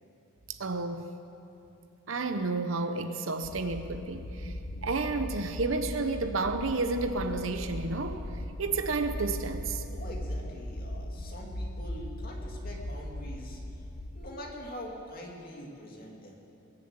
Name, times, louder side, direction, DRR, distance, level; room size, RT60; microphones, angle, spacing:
voice 1, 0.5-1.1 2.1-4.5 4.8-8.2 8.6-9.8, right 3 dB, 70° right, 8 dB, 0.8 m, -31 dB
sound 1, 3.4-14.2, left 1 dB, 80° left, 1.0 m, -38 dB
voice 2, 9.9-13.8 14.1-16.4, equal, 45° left, -1 dB, 2.5 m, -44 dB
21.5 x 7.3 x 8.2 m, 2.8 s
head